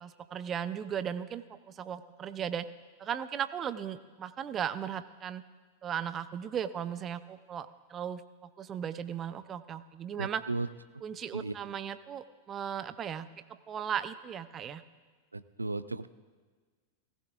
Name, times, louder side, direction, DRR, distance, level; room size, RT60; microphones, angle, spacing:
voice 1, 0.0-2.7 3.0-5.4 5.8-10.4 11.0-14.8, right 8 dB, 25° right, 13 dB, 0.5 m, -37 dB
voice 2, 10.2-10.7 10.9-11.0 11.3-11.5 15.3-16.1, right 3 dB, 80° right, 15 dB, 0.4 m, -35 dB
18.0 x 15.5 x 2.5 m, 1.4 s
figure-of-eight pair, 90°, 0 cm